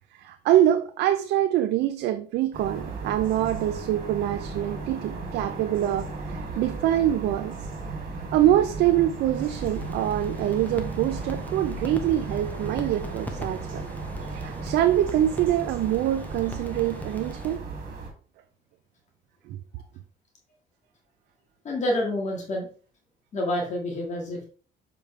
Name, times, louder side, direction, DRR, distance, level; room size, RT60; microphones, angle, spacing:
voice 1, 0.2-7.6 8.3-13.9 14.3-17.6 19.5-19.6, right 12 dB, 75° right, 0.5 m, -24 dB
sound 1, 2.5-18.1, right 3 dB, 55° right, 2.4 m, -35 dB
sound 2, 9.4-17.6, left 1 dB, 10° left, 1.1 m, -42 dB
voice 2, 21.6-22.7 23.3-24.5, left 1 dB, 45° left, 2.0 m, -28 dB
6.6 x 5.0 x 3.3 m
cardioid pair, 110°, 17 cm